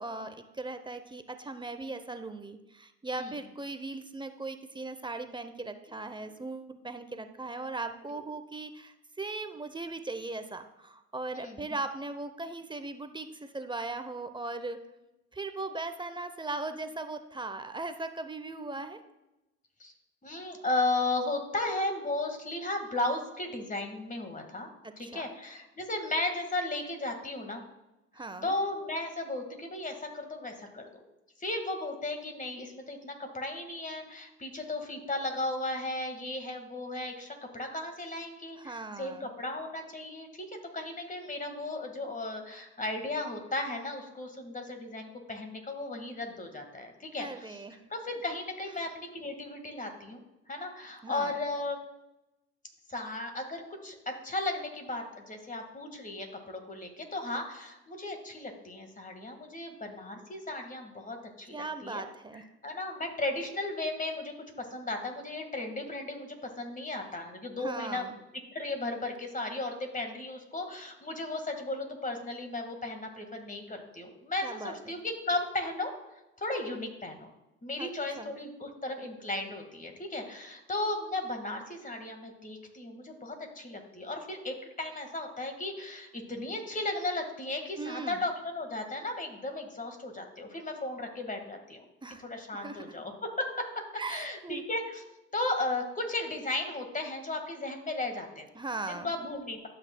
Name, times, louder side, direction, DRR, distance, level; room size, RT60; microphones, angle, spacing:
voice 1, 0.0-14.8 15.3-19.0 25.0-25.2 28.1-28.5 38.6-39.3 47.2-47.8 51.0-51.4 61.5-62.4 67.6-68.1 74.4-74.9 77.8-77.9 78.2-78.3 87.8-88.2 92.0-92.3 92.5-93.0 94.0-94.6 98.5-99.1, right 3 dB, 15° right, 9 dB, 0.7 m, -38 dB
voice 2, 11.3-11.7 18.6-18.8 19.8-19.9 20.2-24.7 25.0-27.6 28.1-31.0 31.4-47.6 47.9-50.2 50.5-51.8 52.9-62.0 62.6-68.0 68.5-75.9 76.4-77.3 77.6-91.8 92.2-95.0 95.3-98.5 98.9-99.7, left 2 dB, 25° left, 5 dB, 1.7 m, -35 dB
12.0 x 5.9 x 2.2 m, 0.95 s
hypercardioid pair, 55°, 34 cm